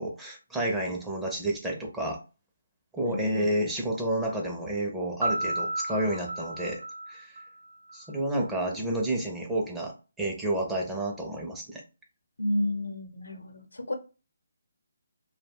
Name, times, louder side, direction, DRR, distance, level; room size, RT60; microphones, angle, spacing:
voice 1, 0.0-2.2 2.9-6.8 7.1-7.4 7.9-11.8, right 1 dB, 5° right, 0.5 m, -30 dB
Piano, 5.2-8.0, right 2 dB, 80° right, 0.4 m, -32 dB
voice 2, 12.4-13.9, left 1 dB, 90° left, 0.7 m, -31 dB
2.3 x 2.2 x 3.4 m
figure-of-eight pair, 155°, 0 cm